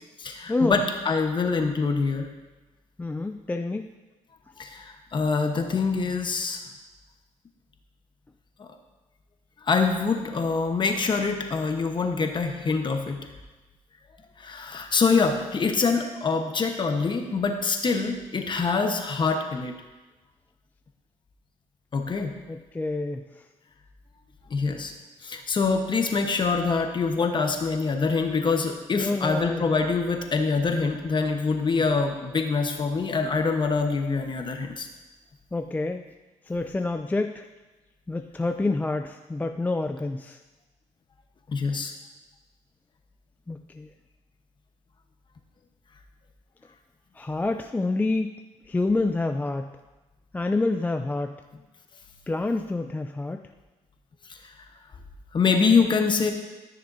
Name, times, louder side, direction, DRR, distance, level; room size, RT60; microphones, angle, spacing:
voice 1, 0.2-2.3 4.6-6.6 8.6-8.7 9.6-13.2 14.4-19.7 21.9-22.3 24.5-24.9 25.2-34.9 41.5-41.9 54.3-54.4 55.3-56.3, left 4 dB, 35° left, 5 dB, 1.1 m, -25 dB
voice 2, 3.0-3.9 22.5-23.2 28.9-29.6 35.5-36.0 36.5-37.5 38.1-40.4 43.5-43.9 47.2-48.3 48.7-49.7 50.3-51.4 52.3-53.4, left 2 dB, 10° left, 6 dB, 0.4 m, -27 dB
13.5 x 6.6 x 2.7 m, 1.2 s
cardioid pair, 90°, 13 cm